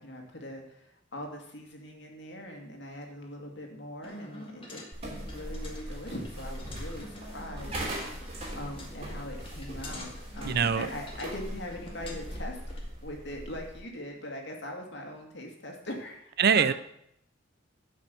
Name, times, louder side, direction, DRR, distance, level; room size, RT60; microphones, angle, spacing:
voice 1, 0.0-7.8 8.5-12.6 13.0-16.6, left 1 dB, 65° left, 2 dB, 2.4 m, -41 dB
sound 1, 4.0-12.8, left 1 dB, 30° left, 2.0 m, -47 dB
sound 2, 4.9-13.8, right 1 dB, 30° right, 3.0 m, -40 dB
voice 2, 10.4-10.9 16.4-16.7, right 7 dB, 55° right, 13 dB, 0.5 m, -23 dB
12.0 x 5.6 x 6.9 m, 0.75 s
head